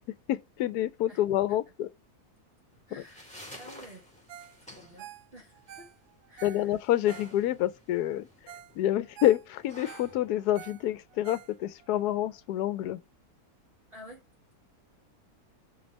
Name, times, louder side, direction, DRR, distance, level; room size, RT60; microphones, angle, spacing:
voice 1, 0.3-1.9 6.4-8.3 8.8-13.0, left 13 dB, 80° left, 1.1 m, -28 dB
sound 1, 2.7-11.7, left 1 dB, 5° left, 2.1 m, -52 dB
voice 2, 2.9-4.1 4.6-5.9 6.3-6.8 13.9-14.3, equal, 35° right, 2.0 m, -51 dB
Ringtone, 4.3-4.6 4.8-7.7 8.2-8.3 8.5-8.7 9.0-11.9 12.3-12.4, right 11 dB, 75° right, 1.2 m, -48 dB
5.2 x 4.2 x 6.0 m
omnidirectional pair, 1.7 m